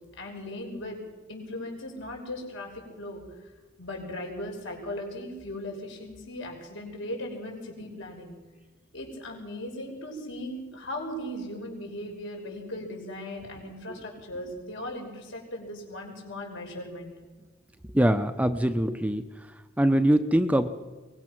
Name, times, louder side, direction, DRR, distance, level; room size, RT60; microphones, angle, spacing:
voice 1, 0.2-1.0 1.3-3.2 3.8-8.4 8.9-17.1, left 1 dB, 70° left, 2 dB, 6.0 m, -38 dB
voice 2, 17.9-19.2 19.8-20.7, right 1 dB, 5° right, 9 dB, 0.8 m, -23 dB
23.0 x 20.5 x 6.1 m, 1.2 s
head